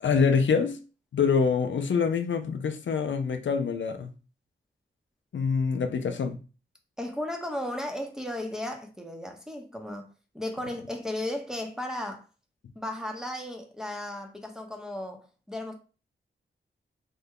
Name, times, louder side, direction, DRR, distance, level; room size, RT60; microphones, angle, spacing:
voice 1, 0.0-0.8 1.1-4.1 5.3-6.4, left 5 dB, 70° left, 0.5 m, -25 dB
voice 2, 7.0-12.2 12.8-15.7, left 1 dB, 5° right, 0.7 m, -35 dB
3.1 x 2.2 x 3.6 m
cardioid pair, 60°, 20 cm